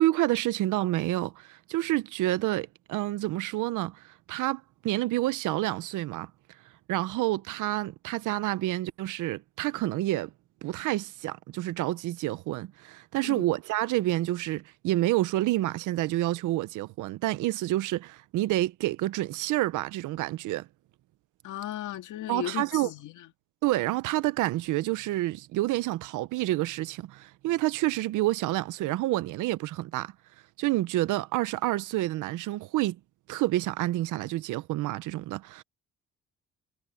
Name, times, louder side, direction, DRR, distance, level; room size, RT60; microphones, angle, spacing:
voice 1, 0.0-6.3 6.9-10.3 10.6-20.7 22.3-22.9 23.6-30.1 30.6-33.0 33.3-35.6, right 16 dB, 90° right, 0.8 m, -28 dB
voice 2, 21.4-23.3, left 12 dB, 80° left, 2.0 m, -36 dB
cardioid pair, 90°, 30 cm